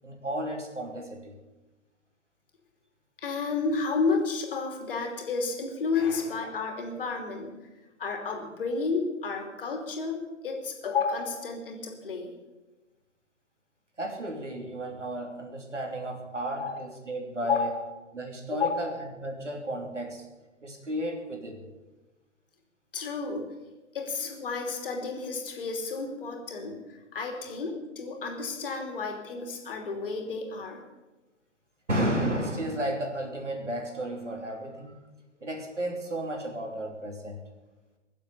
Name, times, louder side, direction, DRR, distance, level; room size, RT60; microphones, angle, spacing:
voice 1, 0.0-1.4 14.0-17.7 18.1-20.2 20.6-21.6 31.9-35.0 35.4-37.4, right 1 dB, 75° right, 3 dB, 3.1 m, -33 dB
voice 2, 3.2-7.5 8.0-12.3 16.6-16.8 17.4-17.8 18.5-18.9 22.9-23.5 23.9-30.8, left 4 dB, 45° left, 3 dB, 2.9 m, -31 dB
22.0 x 7.5 x 6.9 m, 1.2 s
figure-of-eight pair, 130°, 37 cm